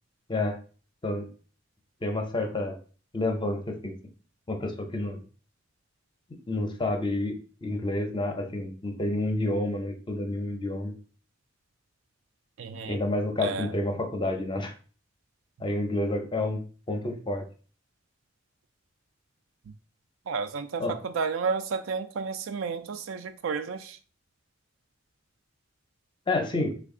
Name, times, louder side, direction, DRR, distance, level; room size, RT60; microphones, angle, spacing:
voice 1, 2.0-2.8 3.1-3.9 4.5-5.2 6.5-7.3 7.6-10.9 12.9-14.7 15.6-16.6 16.9-17.4 20.8-20.9 26.3-26.7, left 2 dB, 25° left, 0.5 m, -29 dB
voice 2, 12.6-13.0 13.4-13.7 19.7-19.8 20.3-24.0, right 5 dB, 90° right, 0.4 m, -32 dB
3.3 x 2.3 x 3.6 m
head